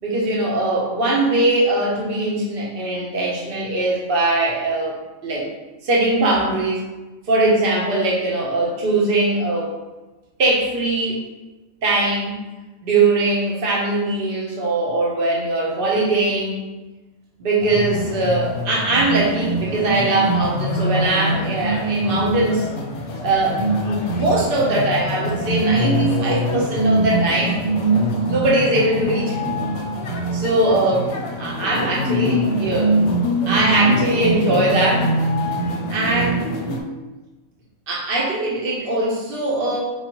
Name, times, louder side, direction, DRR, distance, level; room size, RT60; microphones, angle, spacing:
voice 1, 0.0-5.0 5.2-5.5 5.8-6.9 7.3-9.7 10.4-11.2 11.8-12.3 12.8-16.6 17.4-22.7 23.2-27.6 28.3-29.5 30.3-31.1 31.4-33.0 33.5-35.1 35.9-36.4 37.9-39.8, right 2 dB, 50° right, -4 dB, 0.9 m, -21 dB
sound 1, 17.6-36.8, right 1 dB, 70° left, 0.9 m, -23 dB
4.5 x 2.4 x 2.9 m, 1.1 s
omnidirectional pair, 1.4 m